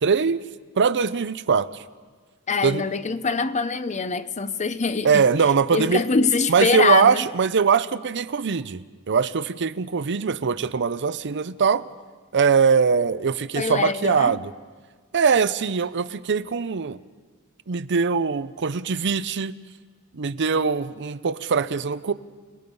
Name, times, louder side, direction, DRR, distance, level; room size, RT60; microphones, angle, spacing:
voice 1, 0.0-0.4 0.8-1.7 2.6-2.8 5.0-6.0 6.5-11.9 12.3-14.5 15.1-17.0 17.7-19.5 20.1-22.1, right 5 dB, 55° right, 0.6 m, -22 dB
voice 2, 2.5-5.2 5.7-7.3 13.6-14.4, left 4 dB, 30° left, 0.7 m, -24 dB
29.5 x 19.0 x 5.4 m
head